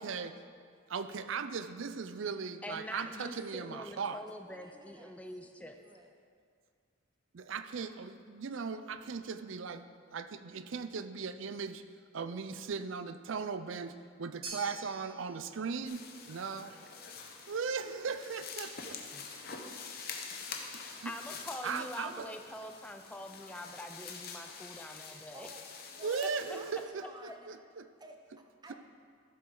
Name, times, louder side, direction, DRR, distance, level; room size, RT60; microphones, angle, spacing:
voice 1, 0.0-0.3 0.9-4.2 7.3-9.9 10.1-11.8 12.1-16.0 16.3-16.8 17.5-19.0 21.0-21.1 21.6-22.3 26.0-27.9, right 5 dB, 65° right, 11 dB, 0.4 m, -38 dB
voice 2, 2.6-5.8 19.1-19.3 20.7-25.5 26.2-26.6, left 1 dB, 5° left, 5 dB, 0.4 m, -45 dB
voice 3, 4.0-6.1 25.3-25.6 25.9-27.5 28.0-28.8, right 2 dB, 20° right, 3 dB, 0.7 m, -54 dB
sound 1, 14.4-22.8, right 3 dB, 45° right, 2.5 m, -53 dB
sound 2, 15.8-26.8, left 5 dB, 45° left, 0.9 m, -46 dB
13.5 x 7.5 x 3.8 m, 2.2 s
head